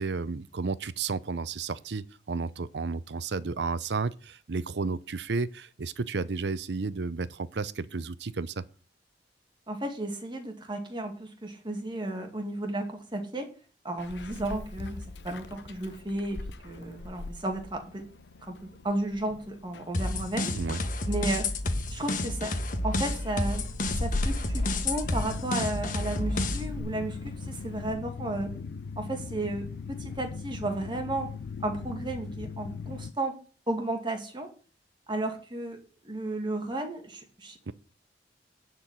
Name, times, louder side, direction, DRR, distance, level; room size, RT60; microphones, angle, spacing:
voice 1, 0.0-8.6 20.5-20.8 37.7-37.8, right 4 dB, 75° right, 0.6 m, -32 dB
voice 2, 9.7-13.5 13.8-18.1 18.4-20.5 21.1-21.5 21.9-23.7 24.0-28.5 29.0-31.3 31.6-33.4 33.7-34.5 35.1-37.6, right 2 dB, 25° right, 1.9 m, -33 dB
Meow, 14.0-27.9, left 2 dB, 85° left, 0.8 m, -41 dB
sound 1, 19.9-26.8, left 2 dB, 50° left, 1.1 m, -30 dB
sound 2, 25.0-33.1, left 5 dB, 65° left, 0.4 m, -39 dB
10.5 x 4.5 x 7.7 m
head